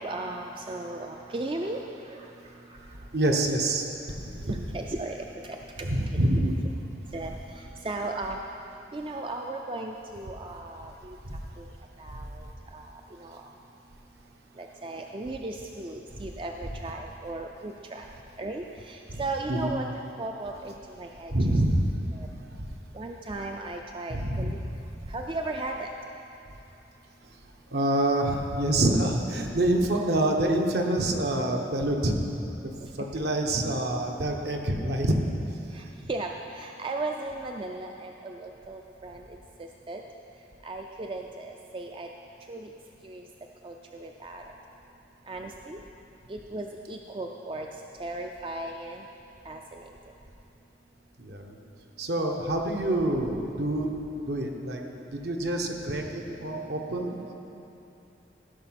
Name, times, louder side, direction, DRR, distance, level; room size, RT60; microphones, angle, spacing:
voice 1, 0.0-1.8 2.1-2.3 2.7-2.8 4.5-6.4 7.1-8.4 8.9-11.2 11.6-11.7 12.0-12.5 12.7-13.5 14.6-18.1 18.4-19.9 20.2-21.3 22.1-22.3 22.9-24.6 25.1-25.9 35.7-40.0 40.6-42.1 42.5-42.7 43.0-43.3 43.6-44.4 45.3-45.8 46.3-47.7 48.0-49.0 49.5-49.9, right 2 dB, 30° right, 2 dB, 0.4 m, -36 dB
voice 2, 3.1-3.9 4.3-4.5 5.8-6.5 11.3-11.4 19.1-19.2 19.5-19.7 21.3-21.9 22.6-22.7 24.1-24.5 27.7-32.2 32.6-32.7 33.0-35.1 51.2-51.6 52.0-53.9 54.3-54.8 55.2-57.3, right 1 dB, 65° right, 2 dB, 1.1 m, -26 dB
15.5 x 6.1 x 5.8 m, 2.9 s
head